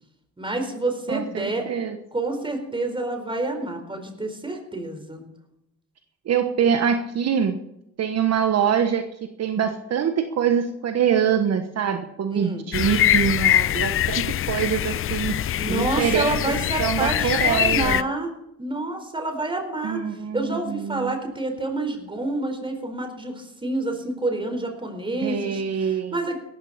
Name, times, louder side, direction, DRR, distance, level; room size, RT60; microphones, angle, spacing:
voice 1, 0.4-1.6 2.1-5.2 12.3-12.7 15.5-18.3 18.6-20.0 20.3-26.4, right 2 dB, 15° right, 5 dB, 4.3 m, -28 dB
voice 2, 1.1-2.0 6.3-7.6 8.0-9.1 9.4-15.3 15.7-16.5 16.8-18.0 19.8-21.2 25.2-26.2, right 8 dB, 60° right, 7 dB, 1.3 m, -24 dB
sound 1, 12.7-18.0, left 12 dB, 45° left, 0.4 m, -23 dB
17.5 x 14.0 x 4.3 m, 0.82 s
cardioid pair, 90°, 30 cm